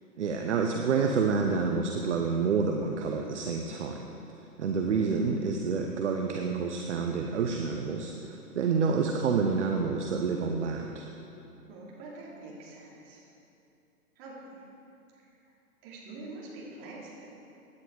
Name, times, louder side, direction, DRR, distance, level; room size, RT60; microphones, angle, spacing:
voice 1, 0.2-4.1 4.6-11.1, right 5 dB, 50° right, 3 dB, 1.1 m, -28 dB
voice 2, 11.7-13.2 14.1-14.7 15.1-15.5 15.8-17.3, right 2 dB, 25° right, -5 dB, 3.4 m, -45 dB
17.0 x 10.5 x 5.0 m, 2.8 s
figure-of-eight pair, 130°, 46 cm